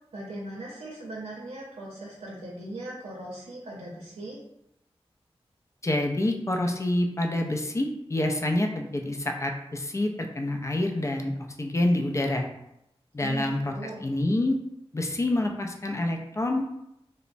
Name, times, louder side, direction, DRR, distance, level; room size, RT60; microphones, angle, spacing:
voice 1, 0.1-4.4 13.2-14.0, right 1 dB, 85° right, -5 dB, 0.6 m, -39 dB
voice 2, 5.8-11.3 11.6-12.5 13.1-14.6 14.9-16.6, left 1 dB, 30° left, 3 dB, 0.4 m, -27 dB
3.0 x 2.0 x 2.5 m, 0.83 s
wide cardioid pair, 65°, 11 cm